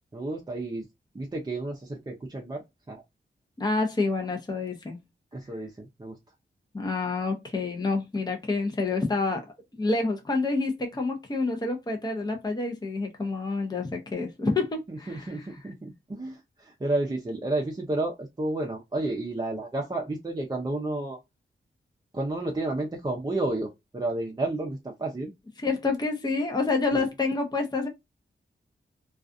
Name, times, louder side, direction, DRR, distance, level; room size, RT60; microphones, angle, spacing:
voice 1, 0.1-0.9 1.1-3.0 5.3-6.2 14.9-21.2 22.1-25.3 26.9-27.1, right 2 dB, 20° right, 0.6 m, -31 dB
voice 2, 3.6-5.0 6.7-15.4 25.6-27.9, left 3 dB, 20° left, 0.7 m, -28 dB
2.4 x 2.3 x 2.5 m
cardioid pair, 60°, 20 cm